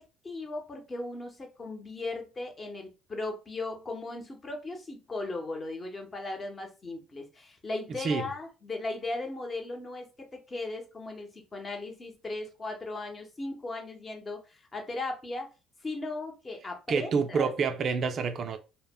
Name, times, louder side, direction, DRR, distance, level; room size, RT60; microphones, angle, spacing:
voice 1, 0.2-15.5 15.8-17.5, left 2 dB, 30° left, 0.9 m, -37 dB
voice 2, 16.9-18.6, right 5 dB, 50° right, 0.3 m, -28 dB
2.0 x 2.0 x 3.5 m
supercardioid pair, 70°, 0 cm